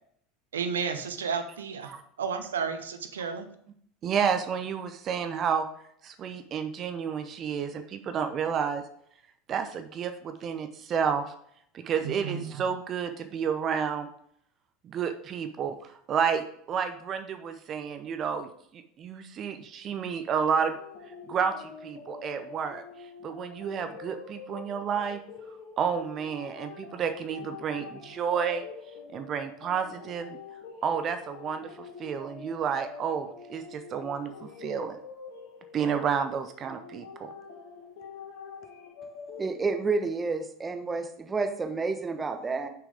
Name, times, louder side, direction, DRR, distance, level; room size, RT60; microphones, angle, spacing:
voice 1, 0.5-1.9 2.2-3.5 12.0-12.6, right 6 dB, 75° right, 8 dB, 0.8 m, -32 dB
voice 2, 4.0-5.6 6.0-8.8 9.5-11.2 11.7-14.1 14.8-20.8 21.3-22.8 23.2-25.2 25.8-28.6 29.1-30.4 30.8-35.0 35.7-37.3, right 7 dB, 35° right, 8 dB, 0.7 m, -30 dB
sound 1, 20.5-39.5, left 5 dB, 55° left, 1.8 m, -45 dB
voice 3, 39.4-42.7, right 4 dB, 20° right, 6 dB, 1.0 m, -30 dB
6.6 x 6.1 x 3.5 m, 0.66 s
figure-of-eight pair, 75°, 0 cm